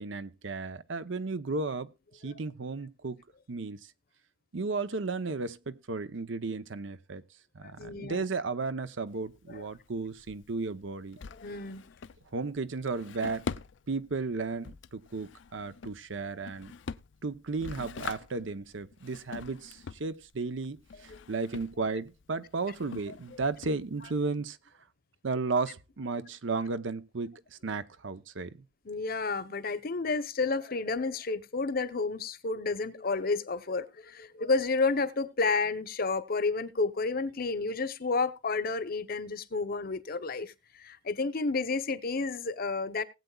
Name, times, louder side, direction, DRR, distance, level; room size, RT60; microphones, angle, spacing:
voice 1, 0.0-1.9 2.2-3.2 3.5-3.9 4.5-7.2 7.5-11.2 12.3-13.5 13.9-16.7 17.2-24.6 25.2-28.5, right 3 dB, 80° right, 0.8 m, -34 dB
voice 2, 7.8-8.2 11.4-11.8 28.9-40.5 40.8-43.0, left 3 dB, 50° left, 0.8 m, -31 dB
Drawer open or close, 9.1-24.3, left 5 dB, 70° left, 0.5 m, -45 dB
19.5 x 8.0 x 2.3 m
head